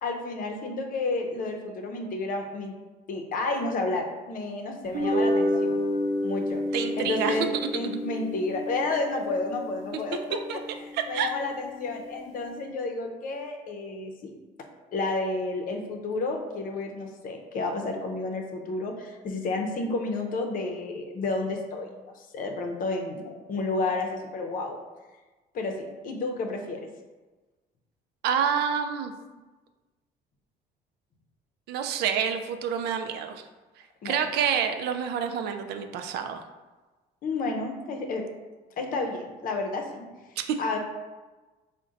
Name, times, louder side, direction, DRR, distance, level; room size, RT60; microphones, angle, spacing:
voice 1, 0.0-2.7 3.1-5.8 6.2-6.6 7.0-7.5 7.7-10.6 11.1-14.3 14.9-21.9 22.2-24.8 25.5-26.8 34.0-34.2 37.2-38.2 38.8-40.0 40.6-40.8, left 3 dB, 55° left, 3 dB, 0.6 m, -31 dB
sound 1, 4.8-11.4, left 1 dB, 45° right, 0.7 m, -30 dB
voice 2, 6.7-7.4 10.5-10.6 10.9-11.3 28.2-29.1 31.7-33.4 34.0-36.4 40.4-40.5, right 7 dB, 75° right, 7 dB, 0.4 m, -28 dB
3.9 x 2.2 x 3.7 m, 1.2 s
cardioid pair, 110°, 17 cm